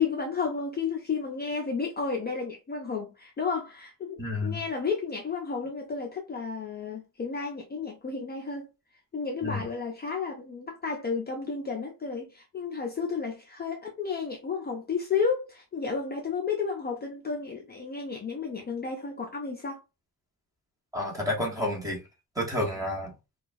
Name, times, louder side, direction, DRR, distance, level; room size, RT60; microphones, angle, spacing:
voice 1, 0.0-8.7 9.1-19.8, left 5 dB, 25° left, 0.5 m, -32 dB
voice 2, 4.2-4.6 9.4-9.6 20.9-22.0 22.4-23.1, left 1 dB, 10° right, 1.1 m, -30 dB
4.9 x 2.3 x 2.6 m
wide cardioid pair, 175°, 36 cm